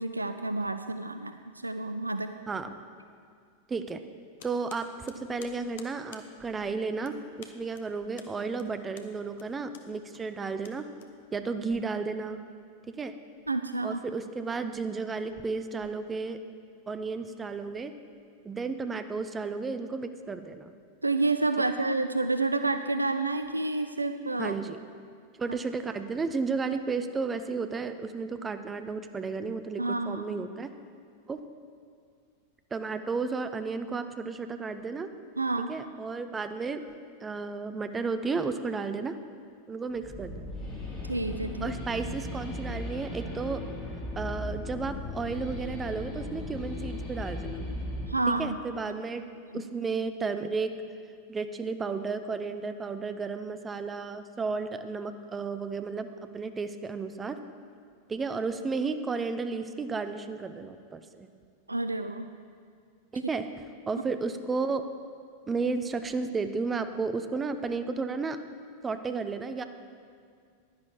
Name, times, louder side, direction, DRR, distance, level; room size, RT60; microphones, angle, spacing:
voice 1, 0.0-2.3 13.5-14.0 21.0-24.6 29.8-30.4 35.4-35.7 41.1-41.7 48.1-48.6 49.5-49.6 61.7-62.3, right 2 dB, 80° right, 9 dB, 0.3 m, -29 dB
voice 2, 3.7-4.0 4.4-10.9 11.3-12.4 13.0-13.1 13.8-16.4 16.9-17.9 18.4-20.7 24.4-24.8 25.4-30.7 31.3-31.4 32.7-35.1 35.7-36.8 37.2-39.2 39.7-40.3 41.6-43.6 44.2-47.7 48.3-49.2 49.5-50.8 51.3-56.1 56.3-57.4 58.1-61.3 63.1-63.5 63.9-64.8 65.5-68.4 68.8-69.6, right 4 dB, 15° right, 9 dB, 0.6 m, -33 dB
sound 1, 4.4-11.6, left 7 dB, 55° left, 0.8 m, -53 dB
sound 2, 39.9-48.1, left 1 dB, 25° left, 2.7 m, -37 dB
10.5 x 10.5 x 4.7 m, 2.1 s
figure-of-eight pair, 90°, 0 cm